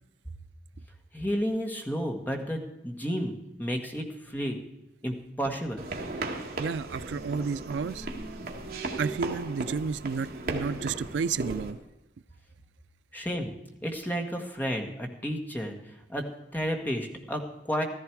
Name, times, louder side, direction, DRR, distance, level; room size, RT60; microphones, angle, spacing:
voice 1, 1.1-3.3 3.6-4.6 5.0-5.8 13.1-13.5 13.8-17.8, equal, 10° left, 2 dB, 1.5 m, -32 dB
sound 1, 5.8-11.7, right 2 dB, 50° right, 1.7 m, -36 dB
voice 2, 6.6-8.1 9.0-11.8, right 5 dB, 75° right, 16 dB, 0.4 m, -31 dB
14.5 x 14.0 x 4.6 m, 0.94 s
head